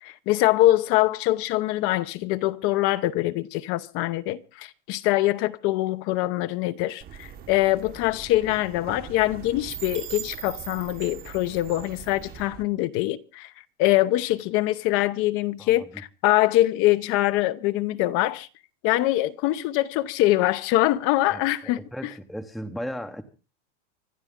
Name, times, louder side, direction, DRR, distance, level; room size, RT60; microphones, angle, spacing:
voice 1, 0.0-13.5 13.8-18.5 18.8-21.8, left 16 dB, 40° left, 0.7 m, -23 dB
sound 1, 7.0-12.6, right 10 dB, 25° right, 1.1 m, -40 dB
sound 2, 9.9-11.9, right 9 dB, 90° right, 3.3 m, -53 dB
voice 2, 15.6-16.0 21.3-23.2, equal, ahead, 0.8 m, -36 dB
25.0 x 12.0 x 3.7 m
supercardioid pair, 145°, 36 cm